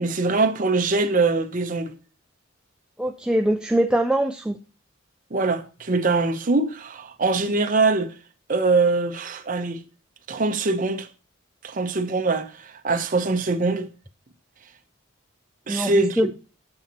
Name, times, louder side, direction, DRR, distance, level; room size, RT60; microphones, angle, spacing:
voice 1, 0.0-1.9 5.3-8.1 8.5-9.8 10.3-11.1 11.6-13.9 15.7-16.4, right 3 dB, 40° right, 0.7 m, -23 dB
voice 2, 3.0-4.6 15.7-16.3, right 1 dB, 5° right, 0.3 m, -23 dB
8.8 x 7.2 x 2.9 m
head